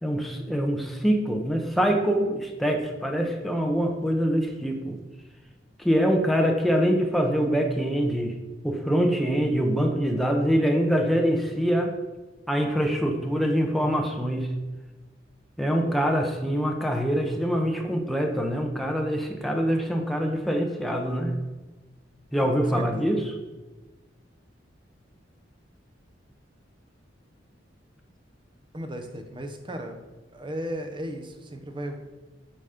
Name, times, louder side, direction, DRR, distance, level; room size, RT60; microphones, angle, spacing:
voice 1, 0.0-5.0 5.8-8.3 8.6-11.9 12.5-14.5 15.6-21.4 22.3-23.2, equal, ahead, 1 dB, 0.8 m, -24 dB
voice 2, 22.4-23.0 28.7-30.0 30.3-32.0, equal, 25° right, 5 dB, 0.8 m, -35 dB
8.9 x 4.2 x 5.1 m, 1.2 s
head